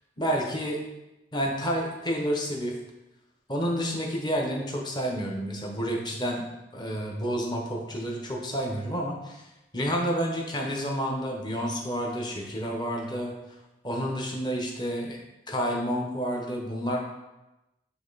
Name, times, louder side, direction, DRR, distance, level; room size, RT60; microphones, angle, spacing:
voice 1, 0.2-0.8 1.3-2.8 3.5-6.4 6.7-9.5 9.7-13.3 13.8-15.2 15.5-17.0, equal, 25° left, 0 dB, 1.0 m, -29 dB
9.1 x 3.2 x 4.0 m, 0.98 s
head